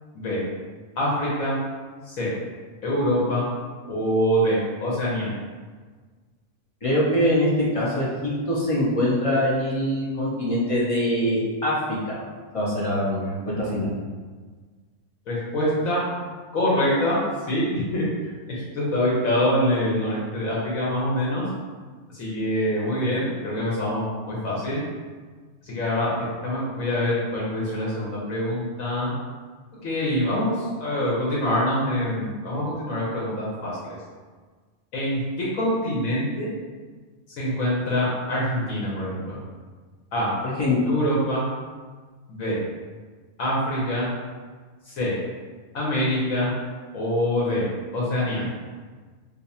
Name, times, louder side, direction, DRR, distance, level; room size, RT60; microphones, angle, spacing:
voice 1, 1.0-1.6 2.1-2.3 2.8-3.5 3.9-5.3 15.3-16.0 16.5-17.2 17.5-18.3 18.7-21.4 22.1-24.8 25.6-29.1 29.8-34.0 34.9-36.5 37.4-39.4 40.1-40.3 40.8-41.4 42.3-42.6 43.4-44.1 44.9-45.1 45.7-46.5 46.9-47.7 47.9-48.4, equal, 70° left, -6 dB, 1.2 m, -25 dB
voice 2, 6.8-12.1 12.5-13.9 40.4-40.8, left 1 dB, 45° left, -6 dB, 0.4 m, -23 dB
2.6 x 2.5 x 4.1 m, 1.5 s
omnidirectional pair, 1.5 m